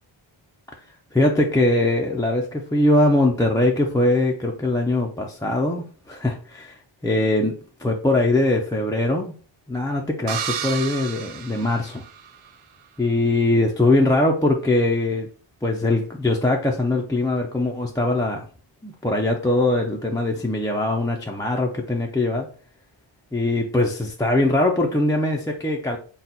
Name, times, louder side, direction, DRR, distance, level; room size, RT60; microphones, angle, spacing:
voice 1, 1.1-7.5 7.8-9.3 9.7-12.0 13.0-15.3 15.6-18.5 18.8-22.5 23.3-26.0, left 2 dB, 5° left, -1 dB, 0.5 m, -21 dB
sound 1, 10.3-12.5, right 8 dB, 75° right, 0.6 m, -32 dB
4.2 x 2.3 x 4.0 m, 0.39 s
wide cardioid pair, 110°, 49 cm